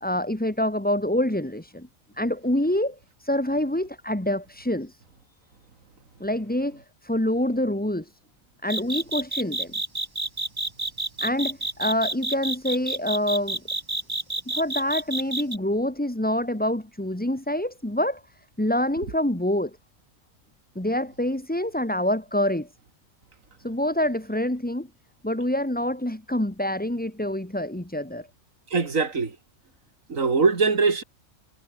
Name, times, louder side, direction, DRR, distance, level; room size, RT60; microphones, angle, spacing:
voice 1, 0.0-1.9 2.2-5.0 6.2-8.1 8.6-9.7 11.2-13.6 14.5-18.2 18.6-19.7 20.7-22.7 23.6-24.9 25.2-28.3, left 1 dB, 5° left, 1.7 m, -26 dB
sound 1, 8.7-15.6, right 2 dB, 15° right, 1.3 m, -29 dB
voice 2, 28.7-29.4 30.1-31.0, right 4 dB, 80° right, 2.9 m, -22 dB
omnidirectional pair, 1.4 m